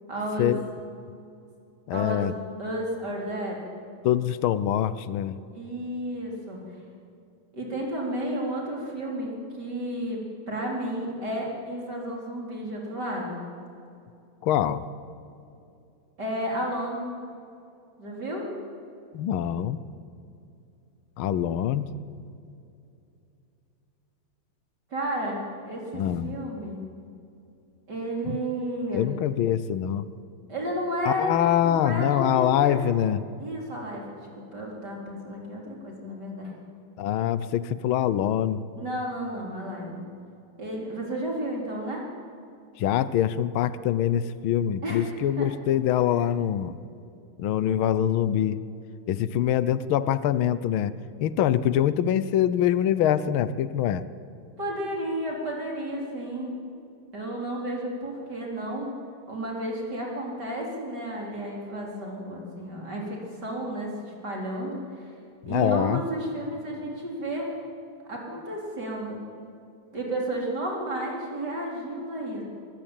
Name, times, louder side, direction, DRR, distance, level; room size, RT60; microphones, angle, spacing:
voice 1, 0.1-0.6 1.9-3.6 5.5-6.6 7.5-10.2 10.5-13.4 16.2-17.1 18.0-18.5 24.9-26.8 27.9-29.1 30.5-31.4 31.6-32.9 33.4-36.5 38.7-40.0 40.6-42.0 44.8-45.1 45.4-45.5 54.6-56.5 57.1-58.9 59.3-65.1 65.5-67.5 68.1-69.2 69.9-72.4, right 1 dB, 50° right, -2 dB, 4.7 m, -32 dB
voice 2, 1.9-2.3 4.0-5.4 14.4-14.8 19.1-19.8 21.2-21.9 25.9-26.3 28.3-28.4 28.9-30.1 31.1-33.2 37.0-38.6 42.8-46.7 47.4-48.6 49.1-50.9 51.2-54.0 65.4-66.0, left 10 dB, 75° left, 15 dB, 1.6 m, -24 dB
23.5 x 23.0 x 9.1 m, 2.6 s
omnidirectional pair, 2.4 m